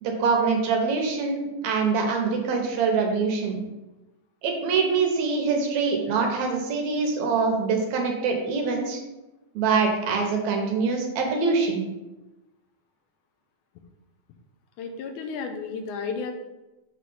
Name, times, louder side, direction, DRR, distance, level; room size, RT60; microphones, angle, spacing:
voice 1, 0.0-3.6 4.4-9.0 9.6-11.8, right 4 dB, 75° right, 2 dB, 2.1 m, -24 dB
voice 2, 14.8-16.3, left 5 dB, 80° left, 5 dB, 2.2 m, -32 dB
6.0 x 3.2 x 5.4 m, 1.0 s
omnidirectional pair, 3.5 m